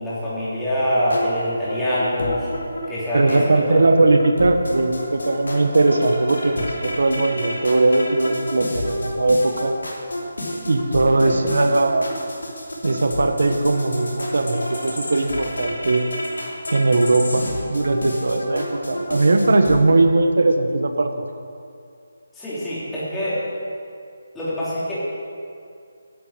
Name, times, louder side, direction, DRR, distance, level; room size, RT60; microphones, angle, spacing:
voice 1, 0.0-2.5 2.9-3.8 11.1-11.2 22.3-23.4 24.3-25.1, equal, 10° left, -11 dB, 3.2 m, -24 dB
sound 1, 0.8-19.8, left 1 dB, 90° left, 3.2 m, -30 dB
voice 2, 3.1-9.7 10.6-12.1 12.8-16.0 16.7-17.4 17.7-21.1, right 2 dB, 70° right, 6 dB, 1.2 m, -19 dB
10.0 x 7.5 x 8.3 m, 2.4 s
figure-of-eight pair, 165°, 0 cm